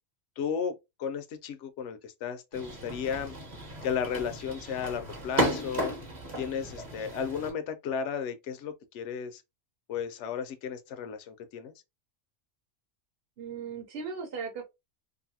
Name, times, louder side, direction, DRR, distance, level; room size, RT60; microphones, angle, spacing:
voice 1, 0.4-3.4 3.8-5.9 6.4-9.4 9.9-11.7, left 7 dB, 70° left, 0.9 m, -34 dB
sound 1, 2.5-7.5, right 1 dB, 40° right, 1.0 m, -34 dB
voice 2, 13.4-14.6, right 5 dB, 55° right, 1.0 m, -37 dB
2.6 x 2.6 x 2.7 m
omnidirectional pair, 1.3 m